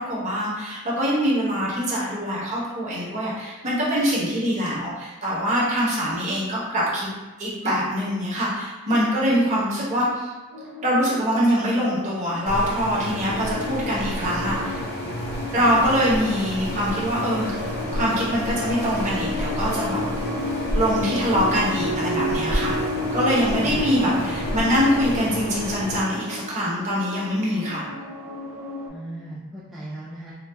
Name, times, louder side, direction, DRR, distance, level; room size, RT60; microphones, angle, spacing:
voice 1, 0.0-7.1 7.4-10.3 10.8-14.8 15.5-17.6 17.9-20.0 20.7-22.8 23.1-27.8, equal, 30° right, -7 dB, 0.9 m, -23 dB
sound 1, 10.5-12.4 12.9-28.9, left 2 dB, 75° right, 0.7 m, -32 dB
sound 2, 12.5-26.0, equal, 45° left, 0.7 m, -30 dB
voice 2, 28.9-30.3, right 1 dB, ahead, -10 dB, 0.3 m, -37 dB
4.0 x 2.4 x 2.2 m, 1.2 s
head